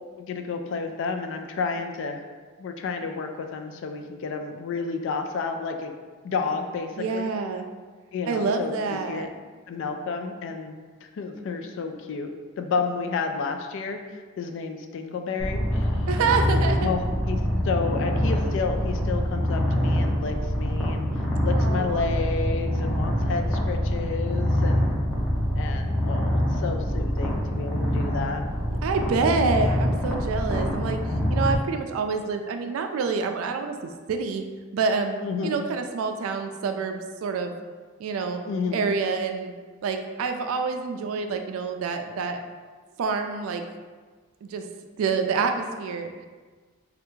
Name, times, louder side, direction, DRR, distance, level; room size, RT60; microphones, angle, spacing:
voice 1, 0.2-2.2 2.6-5.9 6.2-7.3 8.1-9.3 9.7-14.0 14.4-16.2 16.8-17.4 17.6-21.0 21.4-24.9 25.5-28.4 35.2-35.6 38.5-38.9, left 4 dB, 65° left, 5 dB, 0.3 m, -31 dB
voice 2, 7.0-7.7 8.3-9.3 16.1-16.9 21.4-22.1 28.8-31.0 31.3-33.8 34.1-34.4 34.7-37.5 38.0-38.4 38.7-39.5 39.8-42.4 43.0-43.6 44.4-44.6 45.0-46.1, right 4 dB, 90° right, 6 dB, 0.3 m, -27 dB
Purr, 15.4-31.6, equal, 10° left, 0.7 m, -25 dB
3.3 x 2.4 x 3.0 m, 1.4 s
head